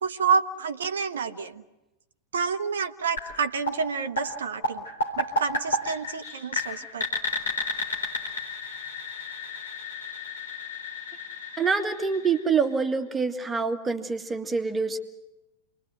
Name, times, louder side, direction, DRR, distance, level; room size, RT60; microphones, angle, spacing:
voice 1, 0.0-1.6 2.3-4.8 5.2-7.1, right 5 dB, 65° right, 10 dB, 1.0 m, -28 dB
sound 1, 3.2-13.0, left 2 dB, 65° left, 4.1 m, -33 dB
voice 2, 11.6-15.0, right 5 dB, 15° right, 7 dB, 1.8 m, -26 dB
28.0 x 21.5 x 7.9 m, 1.0 s
figure-of-eight pair, 90°, 0 cm